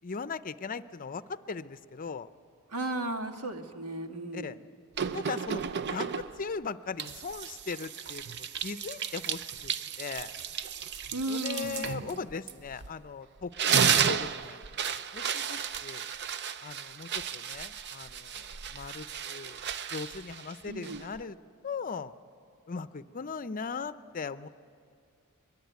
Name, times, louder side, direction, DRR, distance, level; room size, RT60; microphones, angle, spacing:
voice 1, 0.0-2.3 4.3-4.6 5.1-5.6 5.9-10.3 11.3-14.6 14.9-16.0 16.6-19.6 19.9-21.4 21.6-22.1 22.7-24.5, left 5 dB, 40° left, 13 dB, 0.6 m, -39 dB
voice 2, 2.7-4.5 11.1-12.2 20.6-21.1, right 2 dB, 90° right, 5 dB, 1.7 m, -35 dB
sound 1, 5.0-6.5 7.0-13.1 13.4-21.2, right 7 dB, 50° right, 0.6 m, -33 dB
22.5 x 22.5 x 9.4 m, 2.2 s
head